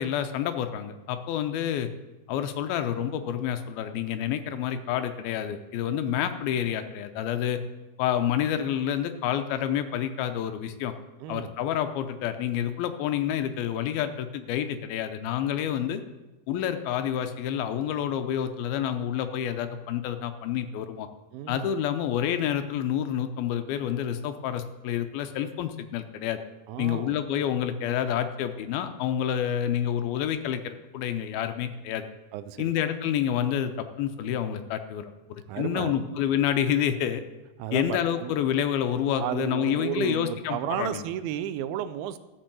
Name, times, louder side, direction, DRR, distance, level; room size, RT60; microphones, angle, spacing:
voice 1, 0.0-1.9 2.3-7.6 8.0-10.9 11.3-16.0 16.5-21.1 21.5-26.4 26.8-32.0 32.6-37.2 37.7-41.0, left 10 dB, 85° left, 8 dB, 2.7 m, -28 dB
voice 2, 21.3-21.7 26.7-27.2 32.3-32.7 35.5-36.1 37.6-38.3 39.2-42.2, right 11 dB, 90° right, 12 dB, 2.6 m, -33 dB
13.5 x 6.3 x 7.6 m, 1.1 s
omnidirectional pair, 4.3 m